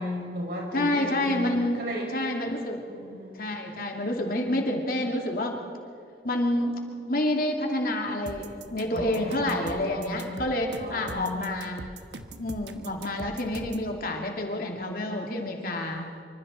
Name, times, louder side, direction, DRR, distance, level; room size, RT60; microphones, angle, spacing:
voice 1, 0.0-1.5 1.8-2.0 2.9-3.3 8.9-10.2 10.8-11.4, left 1 dB, 60° right, -2 dB, 6.2 m, -35 dB
voice 2, 0.7-1.8 2.1-2.9 3.3-5.6 6.2-11.8 12.4-16.1, left 1 dB, 55° left, 1 dB, 2.7 m, -28 dB
sound 1, 8.3-13.9, right 2 dB, 80° right, 1.3 m, -41 dB
25.5 x 25.5 x 4.4 m, 2.4 s
head